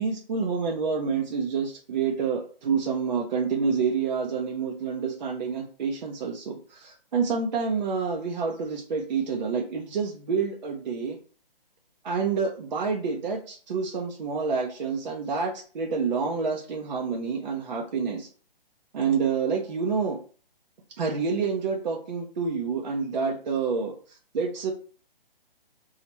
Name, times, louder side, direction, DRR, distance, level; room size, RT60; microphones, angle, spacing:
voice 1, 0.0-11.2 12.0-18.3 18.9-20.2 21.0-23.9 24.3-24.7, right 5 dB, 50° right, 1 dB, 0.6 m, -28 dB
2.9 x 2.4 x 4.2 m, 0.40 s
hypercardioid pair, 155°, 29 cm